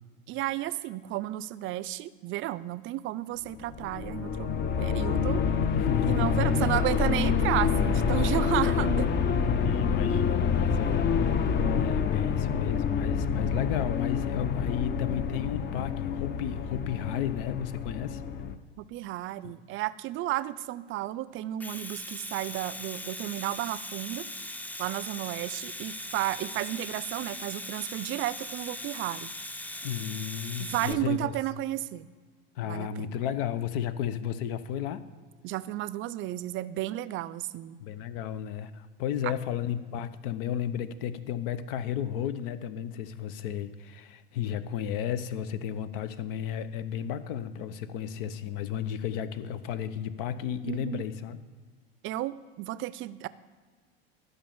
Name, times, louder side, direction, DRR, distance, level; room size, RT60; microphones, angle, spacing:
voice 1, 0.3-4.5 4.8-5.4 6.1-9.1 18.8-24.3 24.8-29.3 30.6-32.1 32.6-33.1 35.4-37.8 39.2-39.3 50.6-51.0 52.0-53.3, right 15 dB, 45° right, 18 dB, 0.5 m, -33 dB
sound 1, 3.6-18.6, left 6 dB, 35° left, 0.9 m, -27 dB
voice 2, 5.8-6.8 9.5-11.1 11.4-18.2 29.8-31.3 32.6-35.0 37.8-51.4, left 9 dB, 65° left, 13 dB, 0.8 m, -33 dB
Domestic sounds home sounds, 21.4-30.9, left 1 dB, 5° left, 0.6 m, -40 dB
12.5 x 5.4 x 7.1 m, 1.6 s
hypercardioid pair, 90°, 29 cm